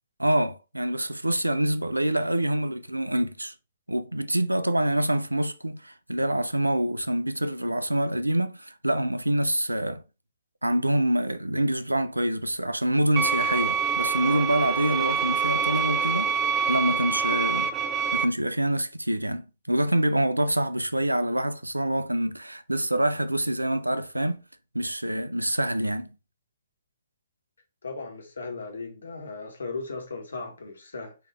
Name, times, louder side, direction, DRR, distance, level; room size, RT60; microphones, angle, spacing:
voice 1, 0.2-3.5 3.9-10.0 10.6-16.3 16.7-17.7 18.1-24.4 24.7-26.1, right 1 dB, 90° right, 0.4 m, -26 dB
sound 1, 13.2-18.2, right 6 dB, 20° right, 0.4 m, -26 dB
voice 2, 27.8-31.1, left 3 dB, 70° left, 1.3 m, -37 dB
3.7 x 3.0 x 4.7 m
figure-of-eight pair, 120°, 0 cm